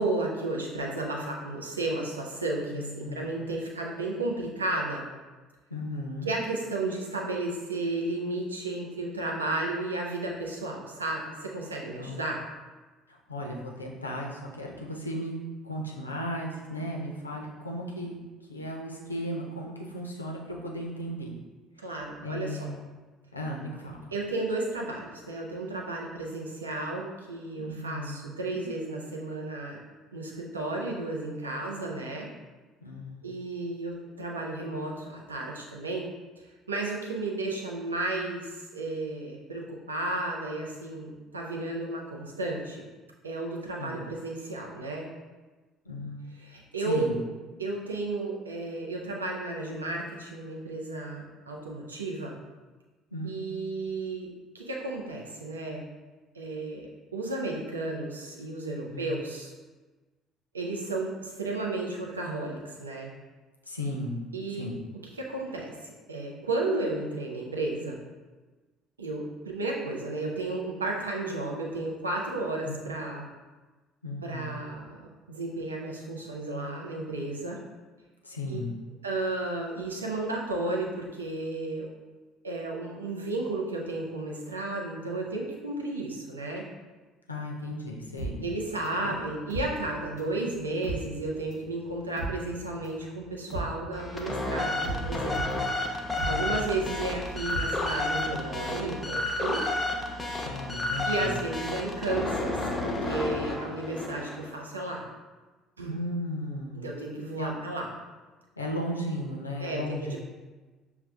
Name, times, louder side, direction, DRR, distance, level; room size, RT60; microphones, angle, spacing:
voice 1, 0.0-5.0 6.3-12.4 21.8-22.7 24.1-29.8 30.1-32.3 33.2-36.1 36.4-42.9 43.2-45.1 46.4-47.2 47.6-52.4 53.2-54.3 54.5-55.8 56.3-59.5 60.5-63.1 64.3-64.7 65.2-68.0 69.0-73.3 74.2-77.6 78.5-78.6 79.0-81.9 82.4-86.6 88.4-95.6 95.9-99.6 101.0-105.0 105.8-106.0 106.7-107.9 109.6-110.2, right 2 dB, 85° right, -1 dB, 0.5 m, -33 dB
voice 2, 2.7-3.3 5.7-6.3 12.0-12.3 13.1-15.4 15.6-18.2 18.5-21.4 22.2-22.8 23.3-24.1 27.6-28.6 32.8-33.2 43.8-44.0 45.8-46.2 46.8-47.2 53.1-53.4 58.9-59.2 63.7-64.2 64.5-64.8 72.6-72.8 74.0-74.5 78.2-78.7 87.3-88.5 89.0-89.2 96.2-96.6 100.4-101.4 105.8-106.9 107.4-107.5 108.6-110.2, left 1 dB, 90° left, -2 dB, 0.5 m, -35 dB
sound 1, 88.2-90.4 90.7-98.4 98.7-98.8, right 2 dB, 55° right, 1.2 m, -37 dB
sound 2, 93.9-104.5, left 2 dB, 15° left, 0.7 m, -31 dB
6.7 x 2.3 x 2.3 m, 1.3 s
figure-of-eight pair, 55°, 0 cm